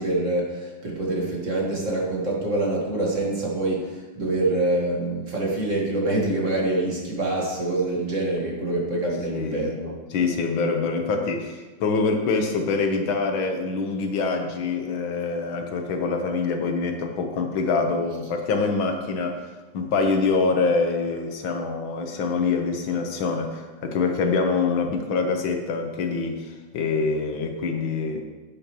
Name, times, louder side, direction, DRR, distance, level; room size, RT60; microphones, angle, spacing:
voice 1, 0.0-9.9, right 2 dB, 40° right, -3 dB, 2.0 m, -25 dB
voice 2, 9.3-9.7 10.1-19.4 19.7-28.2, left 4 dB, 85° left, 4 dB, 1.8 m, -25 dB
12.0 x 8.5 x 3.0 m, 1.3 s
omnidirectional pair, 2.1 m